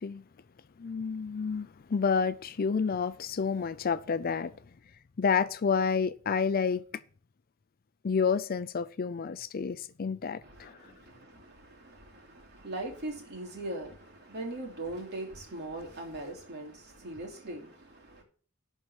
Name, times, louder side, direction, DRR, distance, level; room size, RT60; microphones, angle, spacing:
voice 1, 0.8-4.5 5.2-6.8 8.0-10.7, left 5 dB, 45° left, 0.5 m, -29 dB
voice 2, 10.4-18.2, right 1 dB, 55° right, 3.0 m, -41 dB
11.5 x 4.6 x 7.0 m
head